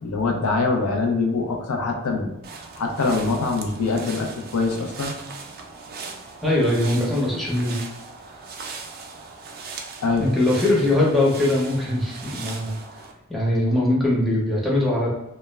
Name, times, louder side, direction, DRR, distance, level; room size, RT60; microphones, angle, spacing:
voice 1, 0.0-2.3 2.8-5.1 10.0-10.3, left 3 dB, 85° left, 2 dB, 0.5 m, -24 dB
sound 1, 2.4-13.1, right 4 dB, 45° right, 0.4 m, -39 dB
voice 2, 6.4-7.8 10.2-12.8 13.3-15.1, left 1 dB, ahead, -5 dB, 0.6 m, -21 dB
2.2 x 2.1 x 3.2 m, 0.94 s
head